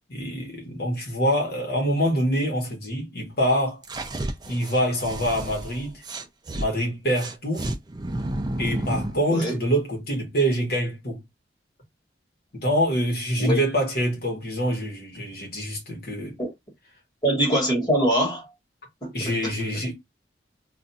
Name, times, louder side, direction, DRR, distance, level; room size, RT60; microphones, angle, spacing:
voice 1, 0.1-3.8 4.5-6.0 6.5-7.7 8.6-11.2 12.6-16.4 19.1-19.9, equal, 55° left, 1.1 m, -25 dB
sound 1, 3.8-6.7 7.2-9.2, right 1 dB, 25° right, 0.4 m, -31 dB
voice 2, 17.2-18.5 19.0-19.8, right 1 dB, 25° left, 1.3 m, -24 dB
2.5 x 2.3 x 4.0 m
head